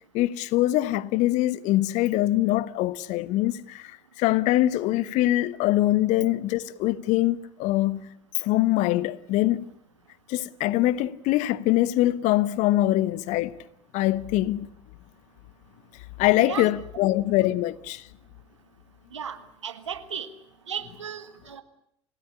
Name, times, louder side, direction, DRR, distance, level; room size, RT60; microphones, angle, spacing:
voice 1, 0.1-3.8 4.2-8.0 8.4-9.6 10.3-13.5 13.9-14.7 16.2-18.0, left 15 dB, 55° left, 1.0 m, -23 dB
voice 2, 19.1-20.3 20.7-21.6, right 8 dB, 85° right, 1.8 m, -35 dB
27.5 x 17.0 x 9.9 m
hypercardioid pair, 75°, 15 cm